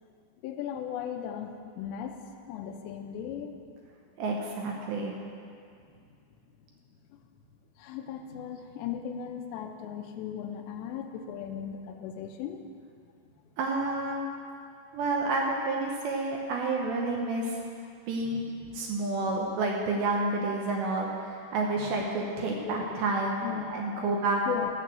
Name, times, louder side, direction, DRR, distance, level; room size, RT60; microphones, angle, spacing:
voice 1, 0.4-2.2 2.5-3.6 7.1-7.2 7.8-12.6 18.2-18.8 21.8-21.9 22.7-23.0 23.4-24.2 24.5-24.7, left 8 dB, 80° left, 5 dB, 2.7 m, -37 dB
voice 2, 4.2-5.1 13.6-14.2 14.9-17.6 18.1-18.4 18.7-23.4 23.7-24.4, right 2 dB, 75° right, -1 dB, 2.9 m, -29 dB
13.5 x 6.5 x 7.6 m, 2.3 s
omnidirectional pair, 5.6 m